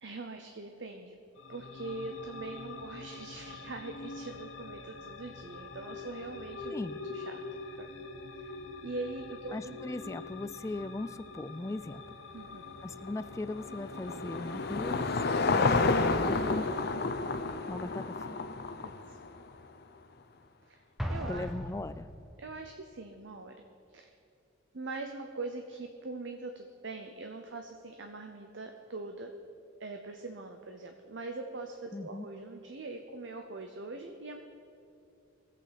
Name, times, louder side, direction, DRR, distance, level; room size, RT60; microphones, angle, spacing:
voice 1, 0.0-1.2 1.5-6.8 7.1-7.4 7.7-8.1 8.4-8.6 8.8-9.8 12.3-12.7 18.8-19.2 20.6-20.8 21.1-21.5 22.4-23.6 23.9-24.1 24.7-29.3 29.8-34.4, right 3 dB, 65° right, 5 dB, 0.7 m, -42 dB
sound 1, 1.4-15.7, left 3 dB, 80° left, 0.9 m, -45 dB
voice 2, 9.5-12.0 12.8-15.1 15.6-16.7 17.7-18.4 21.3-22.1 31.9-32.3, left 2 dB, 15° left, 13 dB, 0.3 m, -39 dB
Car passing by / Engine, 13.0-19.5, left 3 dB, 55° left, 0.6 m, -30 dB
Explosion, 21.0-22.6, equal, ahead, 0.8 m, -38 dB
21.0 x 8.4 x 4.2 m, 2.5 s
head